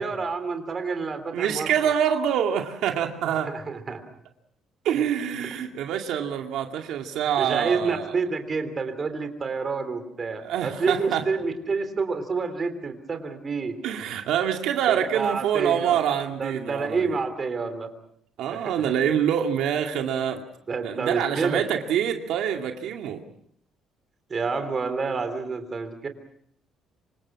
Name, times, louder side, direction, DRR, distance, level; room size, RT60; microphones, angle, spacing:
voice 1, 0.0-1.9 3.5-4.0 7.4-13.8 14.9-16.0 16.4-17.9 20.7-21.6 24.3-26.1, right 4 dB, 25° right, 8 dB, 3.3 m, -28 dB
voice 2, 1.3-3.5 4.8-8.1 10.4-11.2 13.8-17.2 18.4-20.4 20.8-23.2, right 9 dB, 70° right, 3 dB, 2.3 m, -26 dB
27.0 x 25.5 x 6.0 m, 0.67 s
cardioid pair, 165°, 0 cm